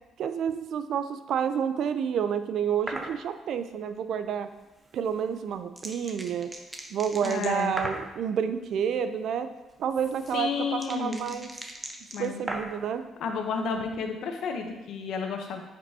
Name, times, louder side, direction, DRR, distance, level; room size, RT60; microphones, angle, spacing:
voice 1, 0.2-4.5 4.9-6.5 6.9-9.5 9.8-11.5 12.2-13.0, right 8 dB, 70° right, 10 dB, 0.4 m, -29 dB
sound 1, 2.9-3.1 5.0-8.1 9.7-12.9, right 2 dB, 20° right, 0.8 m, -38 dB
voice 2, 7.2-7.7 10.3-11.3 12.1-12.4 13.2-15.6, left 5 dB, 75° left, 4 dB, 0.7 m, -31 dB
8.7 x 5.3 x 2.7 m, 1.0 s
cardioid pair, 90°, 0 cm